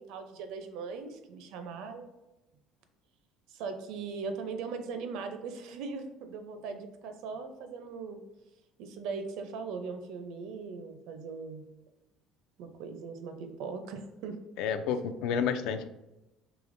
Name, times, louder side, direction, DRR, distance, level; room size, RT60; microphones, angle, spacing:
voice 1, 0.0-2.1 3.5-8.2 8.8-11.7 12.6-14.4, right 5 dB, 65° right, 7 dB, 0.5 m, -39 dB
voice 2, 14.6-15.9, left 7 dB, 65° left, 10 dB, 0.3 m, -30 dB
4.9 x 3.3 x 2.5 m, 0.96 s
cardioid pair, 180°, 0 cm